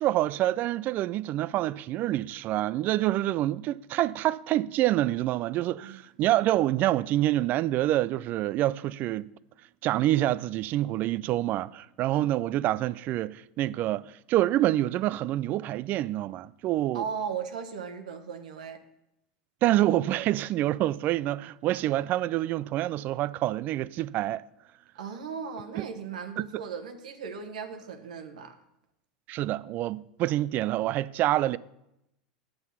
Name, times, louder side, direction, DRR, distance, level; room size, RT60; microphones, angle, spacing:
voice 1, 0.0-9.3 9.8-17.0 19.6-24.4 25.8-25.9 26.4-26.5 29.3-31.6, right 14 dB, 50° right, 0.4 m, -27 dB
voice 2, 16.9-18.8 25.0-28.6, right 6 dB, 85° right, 1.2 m, -37 dB
9.0 x 7.8 x 5.6 m
hypercardioid pair, 90°, 4 cm